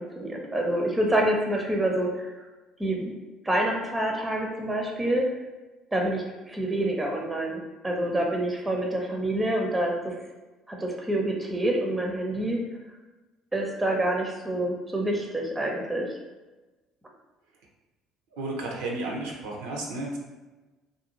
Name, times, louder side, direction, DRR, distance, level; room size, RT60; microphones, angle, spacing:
voice 1, 0.0-2.4 2.8-3.1 3.4-5.3 5.9-10.1 10.7-12.6 13.5-16.1, right 1 dB, 15° right, 0 dB, 0.6 m, -27 dB
voice 2, 18.4-20.2, right 2 dB, 75° right, -1 dB, 0.5 m, -32 dB
2.5 x 2.3 x 2.9 m, 1.2 s
hypercardioid pair, 60°, 0 cm